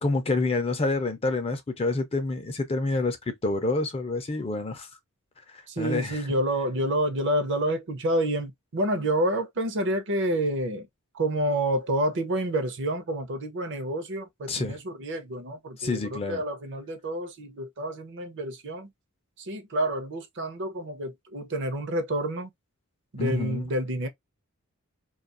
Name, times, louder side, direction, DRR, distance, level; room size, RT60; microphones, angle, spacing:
voice 1, 0.0-4.9 5.5-6.2 14.5-14.8 15.8-16.4 23.2-23.6, left 3 dB, 25° left, 0.4 m, -28 dB
voice 2, 5.7-10.9 11.1-18.9 19.4-22.5 23.1-24.1, right 1 dB, 55° right, 0.6 m, -28 dB
2.3 x 2.3 x 2.4 m
head